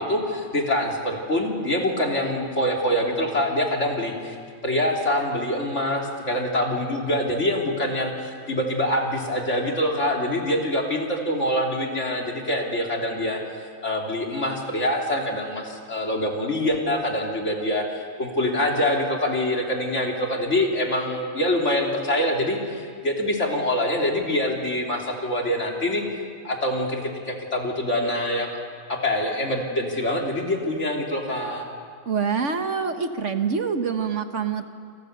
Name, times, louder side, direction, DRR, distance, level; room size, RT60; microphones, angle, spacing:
voice 1, 0.0-4.4 4.6-13.4 13.8-26.0 26.4-28.6 28.9-31.7, left 1 dB, 55° left, 0 dB, 3.8 m, -25 dB
voice 2, 32.0-34.7, right 6 dB, 60° right, 7 dB, 1.7 m, -25 dB
28.5 x 28.5 x 6.8 m, 2.1 s
omnidirectional pair, 1.5 m